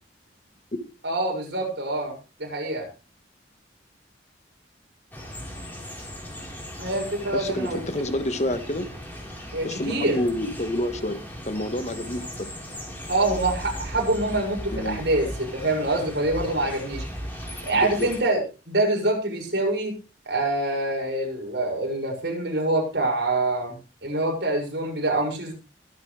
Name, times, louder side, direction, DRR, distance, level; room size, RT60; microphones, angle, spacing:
voice 1, 1.0-2.1 2.4-2.9 6.8-7.8 9.5-10.2 13.1-17.0 17.6-19.9 20.3-23.7 24.0-25.5, right 2 dB, 65° right, 0 dB, 6.6 m, -25 dB
sound 1, 5.1-18.2, equal, 10° left, 4.3 m, -37 dB
voice 2, 7.3-8.9 9.6-12.5 14.7-15.0 17.7-18.1, left 1 dB, 40° left, 10 dB, 1.5 m, -29 dB
23.0 x 8.9 x 3.4 m, 0.32 s
head